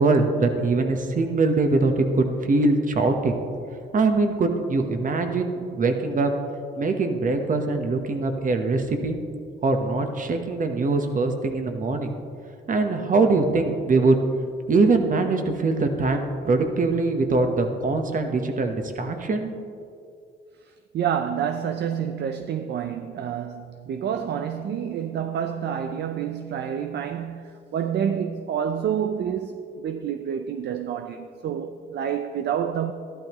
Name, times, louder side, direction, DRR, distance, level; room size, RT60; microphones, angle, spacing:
voice 1, 0.0-3.3 3.9-6.3 6.8-9.2 9.6-12.1 12.7-14.2 14.7-19.5, right 3 dB, 40° right, 1.2 m, -22 dB
voice 2, 20.9-32.9, right 8 dB, 60° right, 0.5 m, -28 dB
13.0 x 11.5 x 3.1 m
cardioid pair, 90°, 20 cm